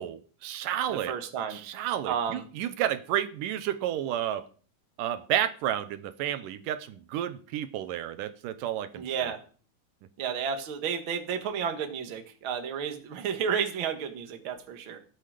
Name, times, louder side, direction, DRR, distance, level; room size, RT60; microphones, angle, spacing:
voice 1, 0.0-1.1 1.5-4.5 5.0-9.3, right 11 dB, 80° right, 2.5 m, -31 dB
voice 2, 0.9-1.6 2.0-2.4 9.0-9.4 10.2-15.0, right 7 dB, 45° right, 1.9 m, -32 dB
19.0 x 7.8 x 5.0 m
omnidirectional pair, 3.8 m